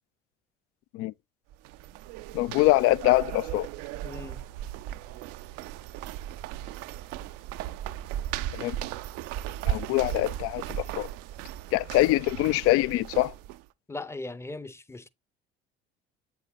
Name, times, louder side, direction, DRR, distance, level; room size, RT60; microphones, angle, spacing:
sound 1, 1.5-13.6, right 12 dB, 55° right, 0.5 m, -36 dB
voice 1, 2.3-3.7 8.5-8.8 9.7-11.1 11.7-13.3, left 17 dB, 55° left, 0.5 m, -24 dB
voice 2, 4.0-4.4 13.9-15.1, left 2 dB, 10° left, 0.7 m, -38 dB
8.2 x 7.0 x 2.3 m
hypercardioid pair, 60°, 29 cm